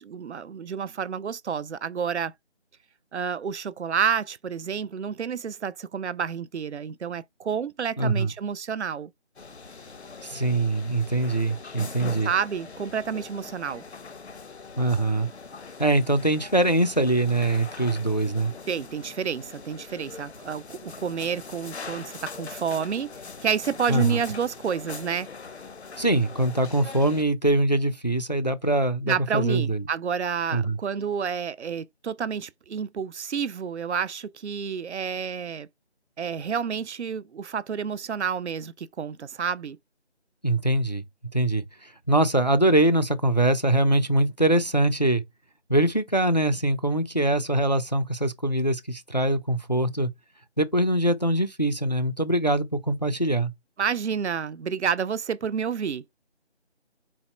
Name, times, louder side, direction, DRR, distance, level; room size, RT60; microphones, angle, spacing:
voice 1, 0.0-2.3 3.1-9.1 12.2-13.8 18.7-23.1 23.4-25.3 29.1-35.7 36.2-39.8 53.8-56.0, right 7 dB, 75° right, 0.5 m, -29 dB
voice 2, 8.0-8.3 10.2-12.3 14.8-15.3 15.8-18.5 23.9-24.2 26.0-29.8 30.5-30.8 40.4-41.0 41.3-45.2 45.7-50.1 50.6-53.5, right 1 dB, 40° left, 0.4 m, -23 dB
sound 1, 9.4-27.2, left 5 dB, 70° left, 0.8 m, -42 dB
4.1 x 2.1 x 4.2 m
figure-of-eight pair, 175°, 34 cm